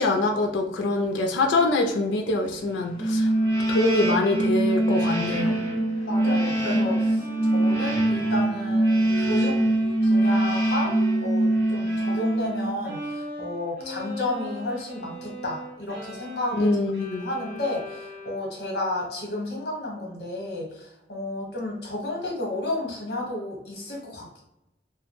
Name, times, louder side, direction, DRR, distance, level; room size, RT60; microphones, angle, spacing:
voice 1, 0.0-3.3 3.7-5.6 16.6-17.3, left 2 dB, 90° left, 3 dB, 0.3 m, -24 dB
sound 1, 3.0-12.9, right 1 dB, 15° left, 0.6 m, -23 dB
Bowed string instrument, 3.2-12.6 12.8-18.7, equal, 60° right, 1.0 m, -39 dB
voice 2, 6.1-9.6 10.0-16.8 17.1-24.4, left 1 dB, 60° left, -1 dB, 0.9 m, -32 dB
2.3 x 2.1 x 2.9 m, 0.89 s
head